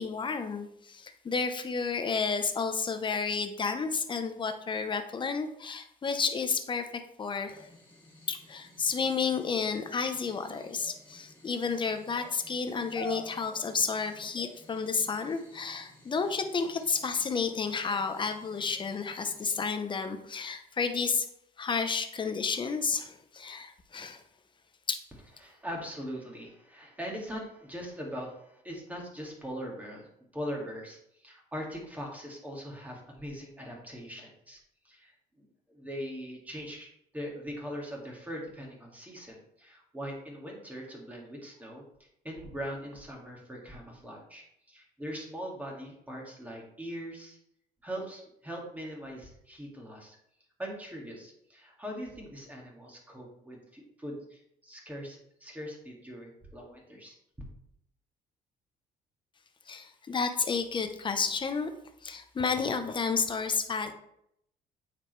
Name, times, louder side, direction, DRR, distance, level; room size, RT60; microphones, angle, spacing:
voice 1, 0.0-6.9 7.2-7.7 8.3-21.3 21.6-24.2 24.9-25.0 59.7-61.7 62.0-63.9, left 5 dB, 30° left, 8 dB, 0.8 m, -31 dB
sound 1, 7.5-19.7, right 1 dB, 10° left, 2.6 m, -50 dB
voice 2, 25.4-30.1 30.3-34.6 34.8-36.9 37.1-41.9 42.2-47.4 47.8-50.2 50.6-57.2, equal, 10° right, -1 dB, 2.0 m, -41 dB
8.4 x 5.0 x 3.2 m, 0.74 s
cardioid pair, 110°, 17 cm